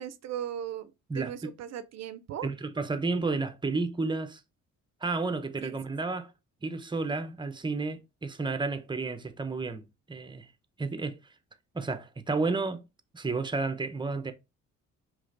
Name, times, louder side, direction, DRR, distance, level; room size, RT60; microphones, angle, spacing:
voice 1, 0.0-2.5 5.6-5.8, right 10 dB, 60° right, 0.5 m, -38 dB
voice 2, 2.4-4.4 5.0-6.3 6.6-9.8 10.1-10.5 10.8-11.2 11.7-12.8 13.1-14.3, right 3 dB, 15° right, 0.6 m, -31 dB
4.9 x 3.3 x 2.5 m
cardioid pair, 90°, 30 cm